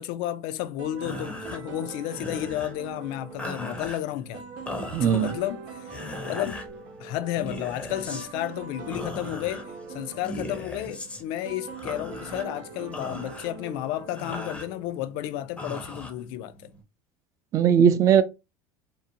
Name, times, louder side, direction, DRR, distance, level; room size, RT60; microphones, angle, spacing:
voice 1, 0.0-4.4 5.0-5.9 6.2-6.6 7.0-16.7, left 13 dB, 65° left, 0.4 m, -32 dB
sound 1, 0.8-15.0, right 4 dB, 50° right, 0.7 m, -42 dB
sound 2, 0.9-16.8, left 1 dB, 10° left, 0.5 m, -40 dB
voice 2, 4.9-5.3 17.5-18.2, right 8 dB, 35° right, 0.3 m, -19 dB
2.7 x 2.1 x 2.7 m
supercardioid pair, 135°, 9 cm